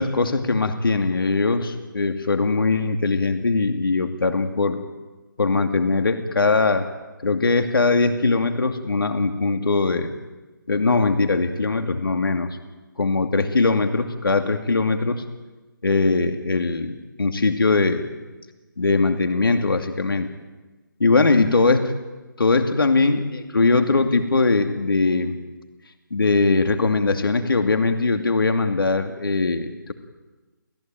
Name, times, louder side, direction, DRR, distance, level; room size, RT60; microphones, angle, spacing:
voice 1, 0.0-4.8 5.4-6.9 7.2-10.1 10.7-12.6 13.0-15.2 15.8-18.1 18.8-20.3 21.0-21.8 22.4-25.4 26.1-29.9, left 3 dB, 85° left, 7 dB, 2.4 m, -21 dB
29.5 x 17.5 x 9.1 m, 1.2 s
hypercardioid pair, 180°, 11 cm